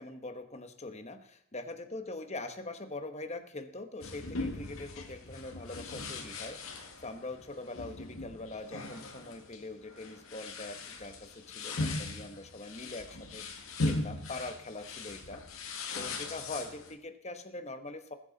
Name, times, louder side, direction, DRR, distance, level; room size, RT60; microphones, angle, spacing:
voice 1, 0.0-18.1, left 2 dB, 30° left, 8 dB, 1.2 m, -43 dB
sound 1, 4.0-16.9, left 2 dB, 75° left, 2.0 m, -39 dB
20.0 x 9.9 x 4.1 m, 0.71 s
head